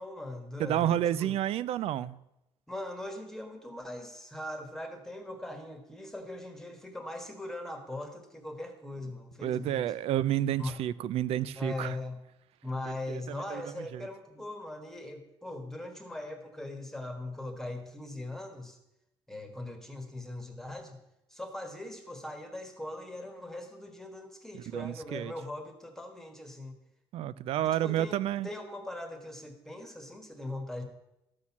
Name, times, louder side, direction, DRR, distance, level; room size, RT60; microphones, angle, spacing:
voice 1, 0.0-1.4 2.7-9.9 10.6-10.8 11.5-12.2 12.6-18.8 19.3-21.0 21.3-26.8 27.6-30.8, left 1 dB, 5° left, 1.5 m, -40 dB
voice 2, 0.6-2.2 9.4-12.0 13.1-14.1 24.5-25.3 27.1-28.5, right 11 dB, 70° right, 0.5 m, -30 dB
13.0 x 6.4 x 7.2 m
cardioid pair, 170°, 10 cm